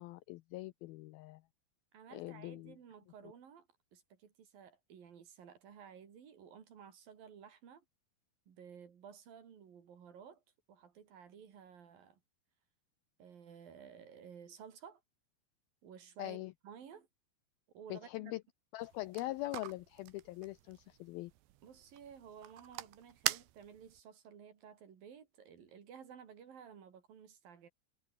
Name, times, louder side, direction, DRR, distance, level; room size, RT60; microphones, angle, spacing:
voice 1, 0.0-1.4 2.1-2.7 16.2-16.5 17.9-18.4 18.7-21.3, left 18 dB, 85° left, 2.1 m, -42 dB
voice 2, 1.9-7.8 8.5-10.4 10.7-12.2 13.2-15.0 15.8-16.4 16.6-17.1 17.7-18.4 21.6-27.7, right 7 dB, 55° right, 4.4 m, -54 dB
sound 1, 18.8-24.0, right 15 dB, 85° right, 3.4 m, -43 dB
omnidirectional pair, 5.0 m